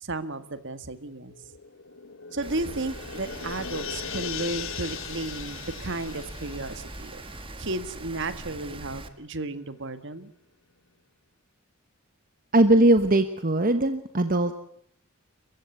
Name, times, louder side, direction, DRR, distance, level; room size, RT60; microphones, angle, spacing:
voice 1, 0.0-1.4 2.3-7.2 7.6-10.3, right 2 dB, 55° right, 12 dB, 1.8 m, -33 dB
sound 1, 1.3-8.3 8.6-8.7, left 7 dB, 65° left, 1.4 m, -39 dB
Rain, 2.4-9.1, right 2 dB, 25° right, 1.7 m, -42 dB
voice 2, 12.5-14.5, right 1 dB, 40° right, 9 dB, 1.2 m, -20 dB
29.5 x 15.5 x 8.4 m, 0.68 s
head